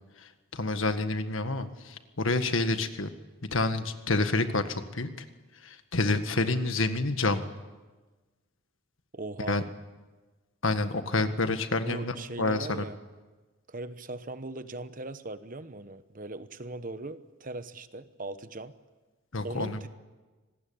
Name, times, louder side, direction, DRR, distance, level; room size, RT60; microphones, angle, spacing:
voice 1, 0.2-3.1 3.5-5.3 5.6-7.4 9.5-9.6 10.6-12.9 19.3-19.8, left 2 dB, 75° left, 9 dB, 1.7 m, -28 dB
voice 2, 9.1-9.7 11.8-12.9 13.7-18.7 19.4-19.9, right 2 dB, 40° right, 12 dB, 1.1 m, -39 dB
26.0 x 19.5 x 8.8 m, 1.3 s
head